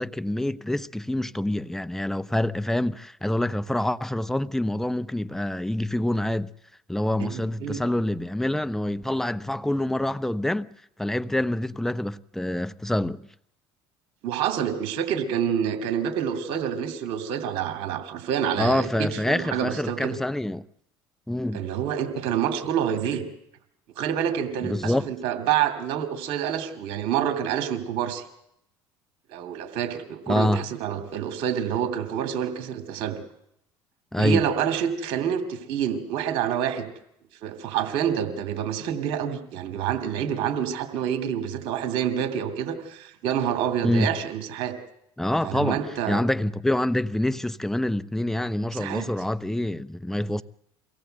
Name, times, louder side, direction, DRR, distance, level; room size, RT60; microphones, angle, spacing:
voice 1, 0.0-6.5 6.9-10.7 11.0-13.2 18.6-20.7 21.3-21.7 24.6-25.1 30.3-30.6 34.1-34.4 43.8-44.1 45.2-45.8 46.1-50.4, left 1 dB, 5° left, 0.7 m, -26 dB
voice 2, 7.2-7.8 14.2-20.2 21.5-23.2 24.0-28.2 29.3-33.2 34.1-36.9 37.4-44.7 45.4-46.2 48.7-49.1, right 9 dB, 65° right, 2.4 m, -27 dB
23.5 x 16.5 x 7.8 m
supercardioid pair, 85°, 11 cm